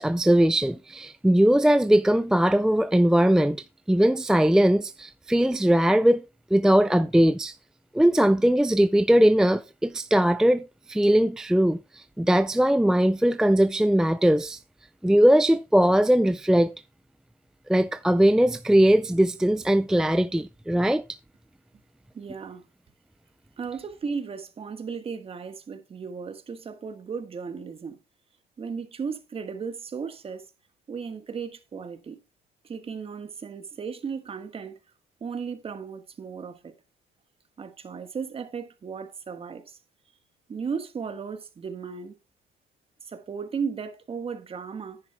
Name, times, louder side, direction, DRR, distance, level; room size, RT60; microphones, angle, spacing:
voice 1, 0.0-3.6 3.9-6.2 6.5-7.6 7.9-14.6 15.0-16.7 17.7-21.0, right 1 dB, 5° right, 0.4 m, -20 dB
voice 2, 22.1-22.6 23.6-28.0 28.6-30.4 30.9-32.2 32.6-34.8 35.2-36.7 37.6-39.8 40.5-42.1 43.1-45.0, right 6 dB, 35° right, 1.4 m, -35 dB
10.5 x 9.9 x 2.3 m
cardioid pair, 110°, 17 cm